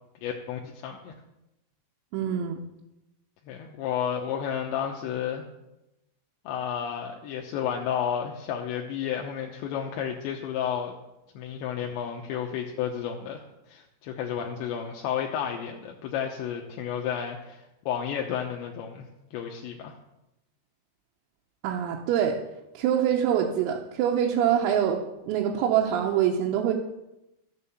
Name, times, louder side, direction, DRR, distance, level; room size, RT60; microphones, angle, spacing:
voice 1, 0.2-1.1 3.5-5.4 6.5-10.9 11.4-19.1 19.3-19.9, left 8 dB, 80° left, 2 dB, 2.8 m, -32 dB
voice 2, 2.1-2.6 21.6-22.4 22.8-25.0 25.3-26.7, right 9 dB, 85° right, -1 dB, 3.7 m, -24 dB
13.5 x 7.5 x 7.0 m, 0.92 s
omnidirectional pair, 5.9 m